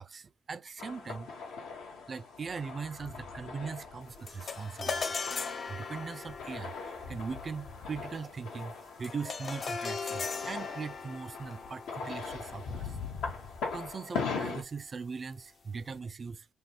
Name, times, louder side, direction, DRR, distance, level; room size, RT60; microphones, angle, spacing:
voice 1, 0.0-1.3 2.1-5.0 5.7-8.7 9.0-13.0 13.7-16.5, right 5 dB, 40° right, 0.5 m, -40 dB
sound 1, 0.8-14.6, left 5 dB, 90° left, 1.9 m, -41 dB
sound 2, 4.3-13.8, left 5 dB, 40° left, 0.6 m, -40 dB
6.2 x 2.6 x 3.2 m
cardioid pair, 90°, 0 cm